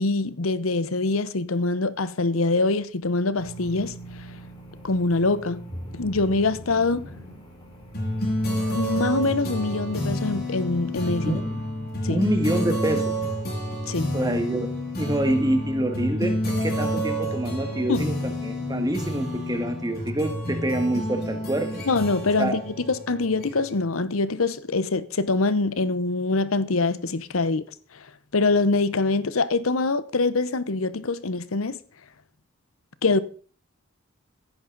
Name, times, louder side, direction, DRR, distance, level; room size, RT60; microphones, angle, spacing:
voice 1, 0.0-3.9 4.8-5.6 5.9-7.1 8.7-11.4 12.0-12.2 13.9-14.1 17.9-18.0 21.9-27.6 28.3-31.8 33.0-33.2, left 3 dB, 80° left, 0.9 m, -24 dB
sound 1, 3.4-11.4, right 1 dB, 20° left, 4.6 m, -42 dB
sound 2, 7.9-23.8, equal, 45° left, 6.0 m, -29 dB
voice 2, 11.3-11.6 12.1-13.1 14.1-14.7 15.0-21.7 22.4-22.6, right 1 dB, 20° right, 1.8 m, -26 dB
15.0 x 11.0 x 4.0 m
head